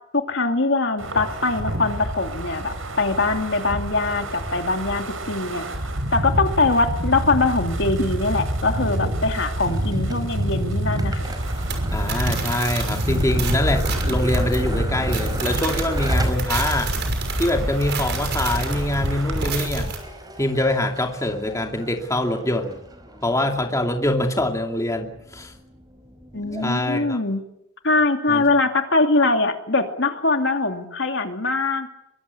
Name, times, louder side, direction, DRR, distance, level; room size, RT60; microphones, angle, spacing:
voice 1, 0.1-5.7 6.1-11.3 26.3-27.4 27.8-31.9, left 3 dB, 60° left, 5 dB, 2.6 m, -22 dB
Wind, 1.0-19.4, right 1 dB, 80° right, 5.4 m, -28 dB
sound 1, 9.6-26.7, right 1 dB, 20° right, 4.8 m, -37 dB
sound 2, 11.4-20.0, right 1 dB, 55° right, 6.1 m, -27 dB
voice 2, 11.9-16.9 17.4-19.9 20.4-22.8 23.2-25.5 26.6-27.2 28.3-28.4, left 1 dB, 15° left, 3 dB, 2.6 m, -24 dB
24.0 x 23.5 x 8.4 m, 0.82 s
head